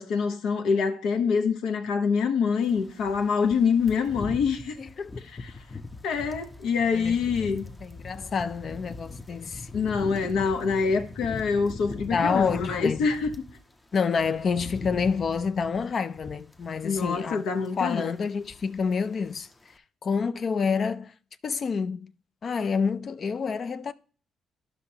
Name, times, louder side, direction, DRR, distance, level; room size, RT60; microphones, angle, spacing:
voice 1, 0.0-4.8 5.4-5.5 6.0-7.7 9.7-13.3 16.8-18.1, left 5 dB, 85° left, 0.9 m, -25 dB
sound 1, 2.6-13.6 13.9-17.3 17.6-17.9 18.2-19.0 19.2-19.5, left 3 dB, 20° left, 0.7 m, -41 dB
voice 2, 4.8-5.3 6.9-7.2 7.8-9.7 12.1-13.1 13.9-17.4 17.8-19.5 20.0-21.1 21.4-22.1 22.4-23.9, left 5 dB, 50° left, 0.4 m, -28 dB
11.5 x 5.8 x 2.8 m
cardioid pair, 90°, 0 cm